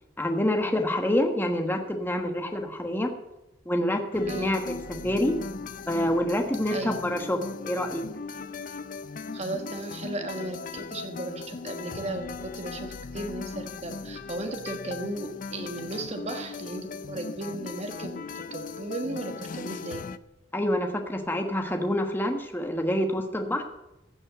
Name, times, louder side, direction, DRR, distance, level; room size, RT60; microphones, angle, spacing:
voice 1, 0.2-3.1 3.6-4.8 5.0-5.3 5.9-7.4 7.6-8.0 20.5-23.6, left 1 dB, 10° left, 4 dB, 1.2 m, -27 dB
sound 1, 4.1-20.2, left 4 dB, 45° left, 0.5 m, -38 dB
voice 2, 4.3-4.6 6.7-7.0 9.3-18.2 18.5-20.0, right 2 dB, 35° right, 5 dB, 1.3 m, -35 dB
15.5 x 5.5 x 7.9 m, 0.93 s
head